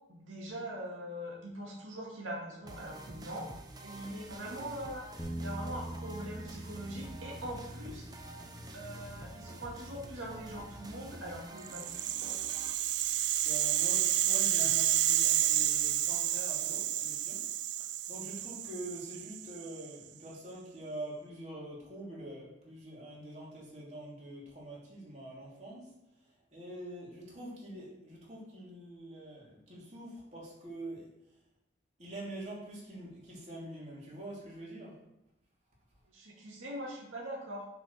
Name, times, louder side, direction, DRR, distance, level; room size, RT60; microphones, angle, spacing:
voice 1, 0.1-5.0 5.3-8.1 8.7-12.4 36.1-37.7, right 1 dB, 90° right, -3 dB, 2.3 m, -42 dB
sound 1, 2.6-12.7, right 1 dB, 20° right, 0.8 m, -48 dB
Bass guitar, 5.2-11.4, right 1 dB, 10° left, 0.9 m, -45 dB
Rattle (instrument), 11.7-19.9, right 12 dB, 60° right, 0.4 m, -30 dB
voice 2, 13.4-17.4 18.1-25.9 26.5-31.1 32.0-35.0, right 1 dB, 35° right, -5 dB, 3.1 m, -45 dB
6.9 x 5.1 x 6.6 m, 0.89 s
head